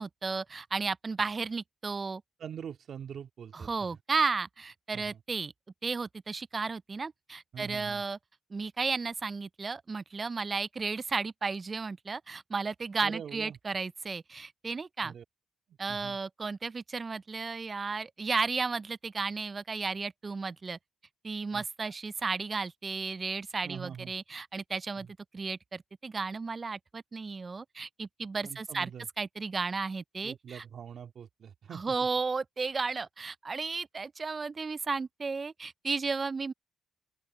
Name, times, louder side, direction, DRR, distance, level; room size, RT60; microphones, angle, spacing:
voice 1, 0.0-2.2 3.5-5.5 5.8-8.2 8.5-15.1 15.8-20.8 21.2-25.1 25.3-28.9 29.2-30.6 31.7-36.5, right 4 dB, 30° right, 0.5 m, -34 dB
voice 2, 2.4-3.7 4.9-5.2 7.5-8.0 13.0-13.6 15.0-15.2 15.7-16.2 21.5-21.6 23.6-24.1 25.0-25.1 28.4-29.1 30.2-32.0, right 8 dB, 60° right, 2.2 m, -44 dB
open air
cardioid pair, 90°, 0 cm